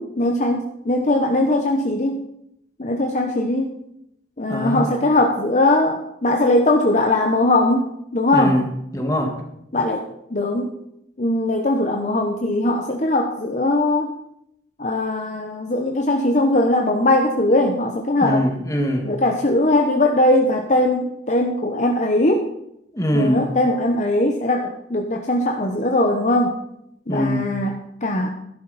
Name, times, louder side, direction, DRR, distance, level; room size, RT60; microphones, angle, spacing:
voice 1, 0.0-2.2 2.8-3.7 4.4-8.6 9.7-10.0 10.3-10.7 11.2-14.1 14.8-18.4 19.0-22.5 23.1-26.6 27.1-28.3, left 1 dB, 40° left, 3 dB, 0.9 m, -20 dB
voice 2, 4.5-4.9 8.3-8.7 8.9-9.4 18.2-19.1 22.9-23.5 27.1-27.5, equal, 20° left, 2 dB, 1.9 m, -22 dB
12.5 x 11.0 x 4.2 m, 0.79 s
head